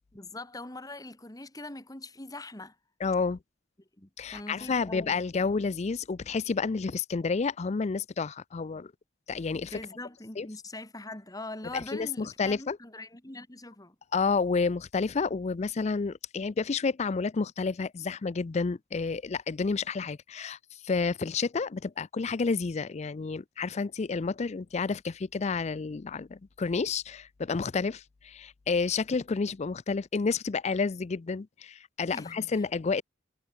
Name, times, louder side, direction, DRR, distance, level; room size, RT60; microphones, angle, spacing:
voice 1, 0.1-2.8 4.0-5.2 9.5-14.0 32.1-32.4, left 2 dB, 20° left, 2.2 m, -42 dB
voice 2, 3.0-3.4 4.2-8.9 9.3-9.8 10.4-10.5 11.7-12.8 14.1-20.6 20.8-33.0, left 4 dB, 35° left, 0.4 m, -30 dB
head